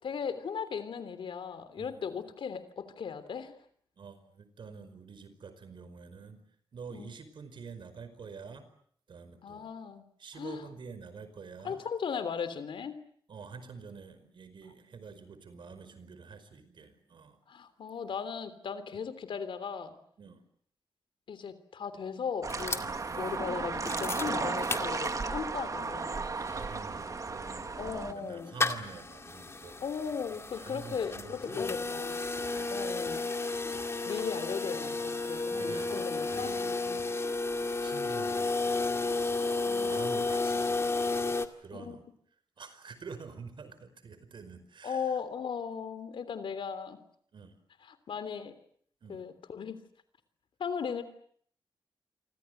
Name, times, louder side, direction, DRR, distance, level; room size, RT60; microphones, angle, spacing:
voice 1, 0.0-3.5 6.9-7.1 9.4-10.1 10.4-10.6 11.6-13.0 17.5-20.0 21.3-26.2 27.8-28.5 29.8-32.2 32.7-33.3 34.1-36.5 39.7-39.9 41.7-42.0 44.8-47.0 47.9-48.5 49.1-49.8 50.6-51.0, left 6 dB, 85° left, 13 dB, 3.2 m, -37 dB
voice 2, 4.0-6.4 6.7-8.7 9.1-9.7 10.2-11.8 13.3-17.4 20.2-20.4 22.8-23.0 24.2-24.4 26.3-29.9 30.5-32.0 32.5-32.7 35.5-37.2 37.5-42.0 42.6-45.2 47.3-47.5 49.0-49.2, right 5 dB, 70° right, 12 dB, 5.1 m, -48 dB
sound 1, 22.4-28.1, right 4 dB, 40° right, 1.7 m, -34 dB
sound 2, 22.5-25.5 25.9-26.0 26.1-41.5, left 3 dB, 30° left, 2.1 m, -33 dB
28.5 x 25.0 x 8.0 m, 0.63 s
wide cardioid pair, 115°, 8 cm